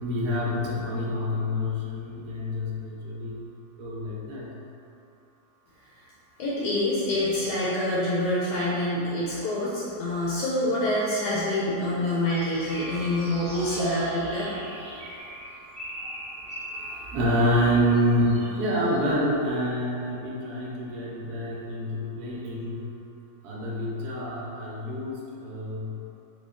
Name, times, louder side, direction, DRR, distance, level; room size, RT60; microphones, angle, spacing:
voice 1, 0.0-3.4 3.8-4.5 12.7-15.0 16.0-16.4 16.7-22.8 23.4-25.9, equal, 70° right, -4 dB, 1.1 m, -28 dB
voice 2, 6.4-14.5, left 1 dB, 75° left, -7 dB, 1.1 m, -26 dB
sound 1, 12.2-17.1 17.9-19.0, equal, 10° right, 0.3 m, -40 dB
3.5 x 2.3 x 3.6 m, 2.7 s
omnidirectional pair, 1.9 m